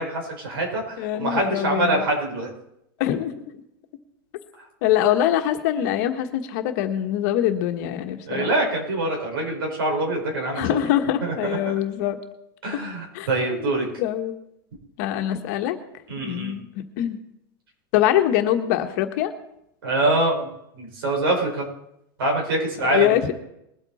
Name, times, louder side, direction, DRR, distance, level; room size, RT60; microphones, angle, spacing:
voice 1, 0.0-2.5 8.3-10.8 11.2-11.7 12.6-13.9 16.1-16.5 19.8-20.5 20.7-21.7 22.2-23.2, right 2 dB, 90° right, 1 dB, 5.5 m, -25 dB
voice 2, 1.0-2.0 3.0-3.4 4.8-8.5 10.5-12.2 13.1-13.7 14.0-14.3 15.0-15.8 16.2-16.6 17.0-17.2 17.9-19.3 22.9-23.3, left 11 dB, 50° left, 6 dB, 1.4 m, -23 dB
21.0 x 8.1 x 4.2 m, 0.80 s
supercardioid pair, 160°, 12 cm